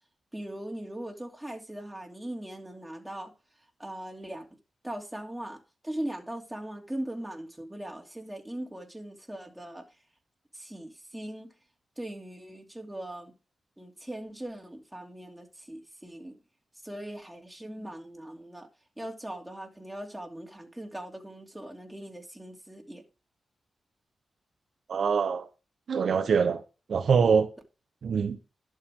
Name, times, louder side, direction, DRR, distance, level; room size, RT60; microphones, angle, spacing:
voice 1, 0.3-3.3 3.8-4.5 4.8-9.8 10.5-11.5 12.0-13.3 13.8-16.4 16.8-18.7 19.0-23.0, right 1 dB, 10° right, 2.8 m, -40 dB
voice 2, 24.9-25.5 25.9-26.6 26.9-27.5 28.0-28.4, right 6 dB, 75° right, 1.0 m, -24 dB
11.5 x 6.8 x 3.7 m
cardioid pair, 65°, 0 cm